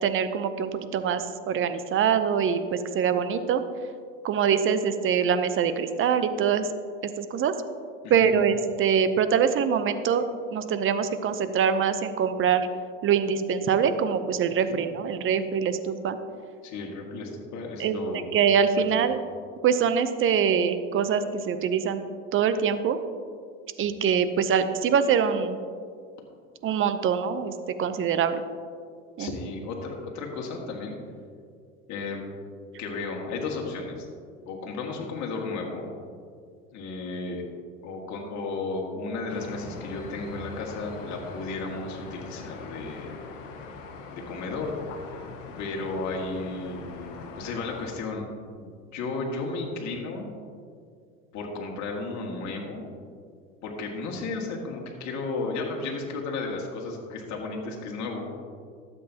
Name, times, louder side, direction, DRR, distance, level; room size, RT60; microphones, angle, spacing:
voice 1, 0.0-3.6 4.2-6.7 7.2-7.5 8.1-10.2 10.5-12.6 13.0-16.2 17.8-19.2 19.6-22.0 22.3-23.0 23.8-25.6 26.6-28.4 29.2-29.3, right 7 dB, 35° right, 11 dB, 0.7 m, -24 dB
voice 2, 16.6-18.3 18.8-18.9 29.2-31.0 31.9-32.2 32.8-34.1 34.4-35.9 36.7-37.4 37.8-43.2 44.1-44.7 45.6-48.3 48.5-50.3 51.3-52.8 53.6-58.3, left 3 dB, 45° left, 0 dB, 2.1 m, -34 dB
sound 1, 39.3-47.9, left 4 dB, 75° left, 1.2 m, -42 dB
12.5 x 7.9 x 2.9 m, 2.1 s
hypercardioid pair, 90°, 38 cm